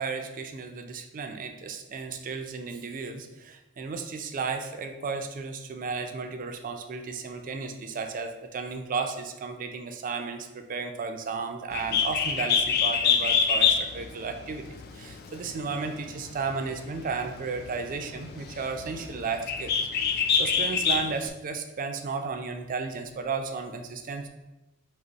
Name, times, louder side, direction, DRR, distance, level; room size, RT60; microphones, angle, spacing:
voice 1, 0.0-14.7 14.9-24.3, right 4 dB, 40° right, 6 dB, 0.4 m, -34 dB
Bird, 11.7-21.3, left 6 dB, 45° left, 0.3 m, -27 dB
5.1 x 2.0 x 3.9 m, 1.0 s
head